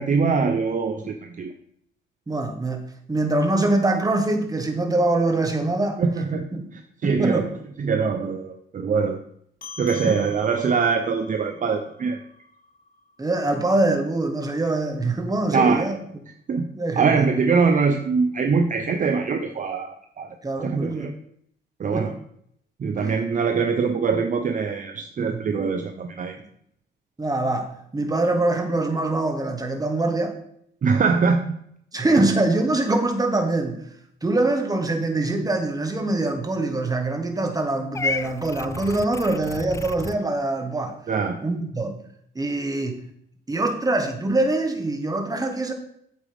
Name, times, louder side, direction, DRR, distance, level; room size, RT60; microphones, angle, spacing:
voice 1, 0.0-1.5 6.0-6.5 6.7-7.4 7.8-9.2 9.8-12.2 15.5-15.9 16.5-16.7 17.0-20.3 20.6-21.1 21.8-22.1 22.8-26.4 30.8-31.6 41.1-41.4, right 5 dB, 40° right, 6 dB, 0.7 m, -23 dB
voice 2, 2.3-6.0 6.5-6.7 7.0-7.5 10.0-10.2 13.2-16.0 16.7-17.3 20.4-21.1 21.9-22.1 23.0-23.1 25.3-25.5 27.2-30.4 31.9-33.8 34.2-41.0 41.4-42.0 42.3-43.0 43.5-45.7, right 2 dB, 20° right, 5 dB, 1.5 m, -24 dB
sound 1, 9.6-14.4, left 4 dB, 45° left, 1.7 m, -44 dB
Purr / Meow, 37.9-40.2, left 4 dB, 15° left, 0.3 m, -31 dB
8.2 x 7.6 x 3.5 m, 0.70 s
cardioid pair, 90°, 20 cm